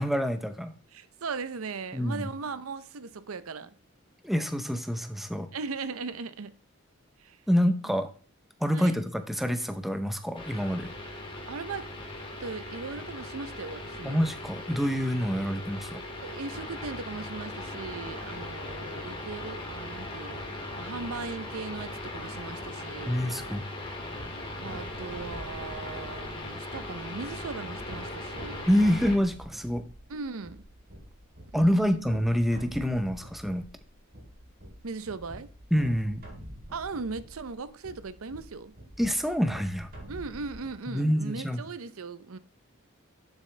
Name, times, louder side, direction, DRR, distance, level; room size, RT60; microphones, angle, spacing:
voice 1, 0.0-0.7 1.9-2.3 4.2-5.5 7.5-8.1 8.6-10.9 14.0-16.0 23.1-23.7 28.7-29.8 31.5-33.6 35.7-36.2 39.0-39.9 40.9-41.6, equal, ahead, 0.7 m, -27 dB
voice 2, 0.9-3.8 5.5-6.5 7.2-7.4 7.9-8.0 8.7-8.9 11.5-11.9 12.3-14.2 16.2-20.5 20.8-23.2 24.6-28.7 30.1-30.6 31.5-32.2 34.8-35.5 36.7-38.7 40.1-42.4, right 4 dB, 85° right, 0.7 m, -38 dB
sound 1, 10.3-29.2, left 1 dB, 25° left, 2.0 m, -39 dB
sound 2, 24.1-40.8, equal, 45° right, 4.1 m, -47 dB
11.5 x 7.3 x 3.3 m
head